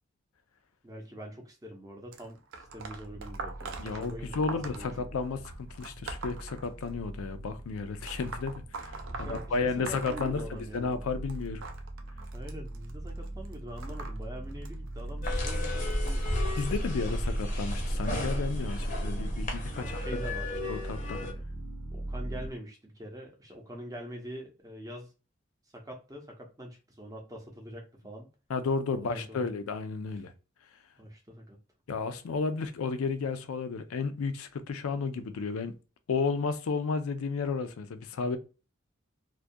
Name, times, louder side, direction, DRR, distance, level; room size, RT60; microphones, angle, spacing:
voice 1, 0.8-4.9 9.1-10.9 12.3-16.2 19.7-20.6 21.9-25.1 25.7-28.3 28.9-29.5 31.0-31.6, equal, 15° right, 0.6 m, -44 dB
sound 1, 2.1-7.2 8.0-11.0 11.3-16.7 17.4-17.7 18.7-18.8 19.7-19.8 20.5-20.6, right 4 dB, 65° right, 0.4 m, -43 dB
sound 2, 2.6-22.5, right 1 dB, 85° right, 0.8 m, -40 dB
voice 2, 3.8-10.4 10.7-11.6 16.6-20.0 20.7-21.2 28.5-30.3 31.9-35.7 36.1-38.4, left 4 dB, 90° left, 0.4 m, -32 dB
sound 3, 15.2-21.3, left 1 dB, 35° left, 0.6 m, -32 dB
2.3 x 2.2 x 2.5 m
head